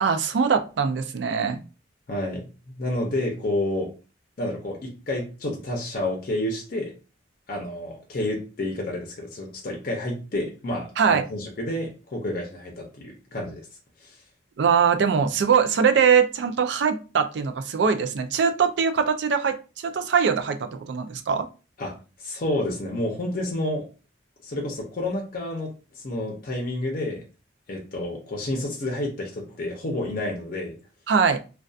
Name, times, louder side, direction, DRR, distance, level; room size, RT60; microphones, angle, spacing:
voice 1, 0.0-1.6 11.0-11.2 14.6-21.5 31.1-31.4, right 6 dB, 70° right, 8 dB, 0.4 m, -22 dB
voice 2, 2.1-2.5 2.8-3.9 4.4-6.9 7.5-13.7 14.0-14.2 21.8-23.9 24.4-27.2 27.7-30.8, left 1 dB, 50° left, 0 dB, 0.6 m, -30 dB
2.5 x 2.2 x 2.3 m, 0.33 s
head